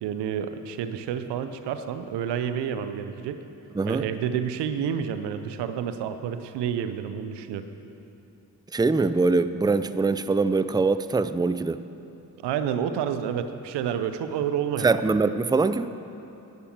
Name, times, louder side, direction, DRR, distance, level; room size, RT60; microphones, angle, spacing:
voice 1, 0.0-3.4 3.8-7.7 12.4-15.0, right 8 dB, 90° right, 10 dB, 0.7 m, -29 dB
voice 2, 3.7-4.1 8.7-11.8 14.8-15.9, right 3 dB, 10° right, 13 dB, 0.5 m, -23 dB
11.5 x 10.5 x 7.2 m, 2.9 s
supercardioid pair, 40°, 40 cm